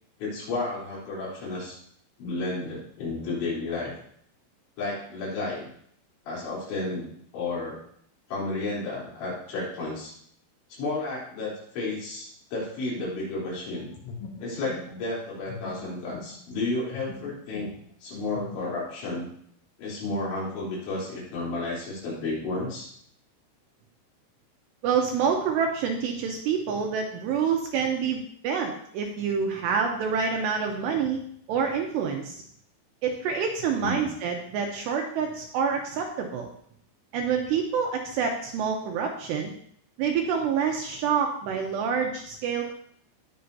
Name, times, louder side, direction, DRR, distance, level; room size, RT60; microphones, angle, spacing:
voice 1, 0.2-1.8 2.2-3.9 4.8-5.7 6.3-7.1 7.3-7.8 8.3-10.1 10.8-13.9 14.4-17.7 18.0-19.3 19.8-22.9 33.8-34.0, left 2 dB, 70° left, -6 dB, 5.8 m, -32 dB
sound 1, 13.4-16.6 16.9-17.9 18.3-18.7, left 5 dB, 85° left, 3.7 m, -42 dB
voice 2, 24.8-31.2 31.5-32.4 33.0-36.5 37.1-39.5 40.0-42.7, right 6 dB, 75° right, 2 dB, 2.6 m, -27 dB
18.5 x 6.8 x 2.8 m, 0.65 s
omnidirectional pair, 5.6 m